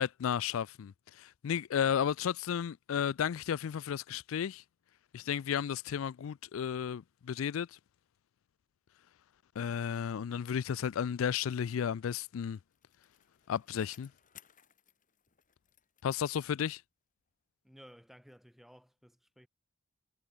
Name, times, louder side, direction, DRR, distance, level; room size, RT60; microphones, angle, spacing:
voice 1, 0.0-4.6 5.1-7.8 9.6-12.6 13.5-14.1 16.0-16.8, left 8 dB, 75° left, 0.4 m, -33 dB
Bicycle, 12.0-16.9 17.3-17.4, left 10 dB, 40° left, 2.3 m, -63 dB
voice 2, 17.6-19.5, equal, ahead, 4.6 m, -57 dB
head